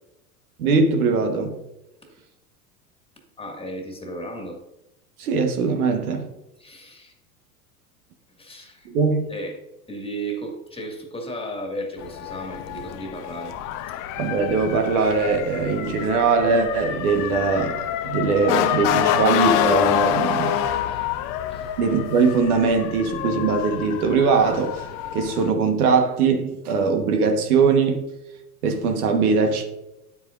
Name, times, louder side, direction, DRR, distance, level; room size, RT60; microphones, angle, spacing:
voice 1, 0.6-1.6 5.2-6.3 8.8-9.3 14.2-17.8 18.0-20.6 21.8-24.9 25.1-28.0 28.6-29.6, right 4 dB, 70° right, 1.4 m, -21 dB
voice 2, 3.4-4.6 6.6-7.1 8.4-8.9 9.3-9.6 9.9-13.6 20.9-21.1 21.5-21.7, right 1 dB, 10° left, 1.9 m, -34 dB
Motor vehicle (road) / Siren, 12.0-25.5, left 10 dB, 45° left, 0.8 m, -27 dB
9.7 x 8.0 x 2.5 m
hypercardioid pair, 85°, 46 cm